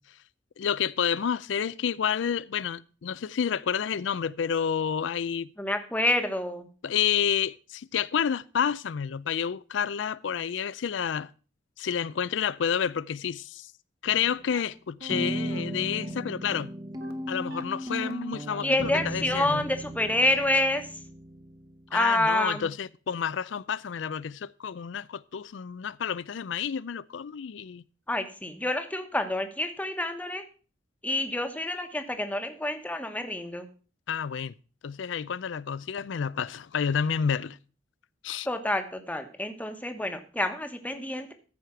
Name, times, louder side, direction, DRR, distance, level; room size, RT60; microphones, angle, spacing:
voice 1, 0.6-5.5 6.8-11.3 11.8-13.7 14.0-16.7 17.3-19.6 21.9-27.9 34.1-34.5 34.8-37.6 38.2-38.5, left 7 dB, 75° left, 0.4 m, -29 dB
voice 2, 5.6-6.7 18.6-20.8 21.9-22.7 28.1-30.4 31.0-33.7 38.5-41.3, left 1 dB, 10° left, 1.1 m, -28 dB
sound 1, 14.1-14.7 15.1-22.0, right 1 dB, 20° right, 0.9 m, -36 dB
sound 2, 14.5-14.6 15.0-15.1 15.5-15.6 16.0-16.1 16.5-16.6 17.0-17.1 17.5-17.6 18.0-18.1 18.5-18.6 19.0-19.1 19.5-19.6 20.0-20.1 20.5-20.6, right 3 dB, 55° right, 1.4 m, -44 dB
14.0 x 5.0 x 5.8 m
head